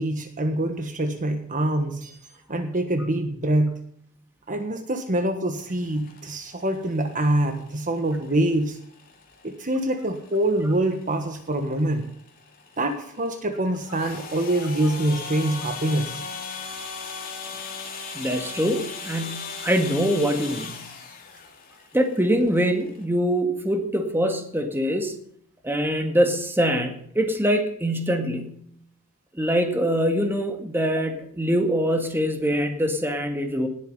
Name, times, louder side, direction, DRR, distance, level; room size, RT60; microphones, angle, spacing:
voice 1, 0.0-2.2 2.5-3.8 4.5-8.8 9.4-12.1 12.8-16.2, right 1 dB, 35° right, 6 dB, 1.5 m, -25 dB
sound 1, 5.6-23.0, left 5 dB, 40° left, 3.2 m, -39 dB
voice 2, 18.1-20.9 21.9-25.2 25.6-28.5 29.4-33.7, equal, 10° right, 5 dB, 2.0 m, -24 dB
18.5 x 8.5 x 5.6 m, 0.66 s
head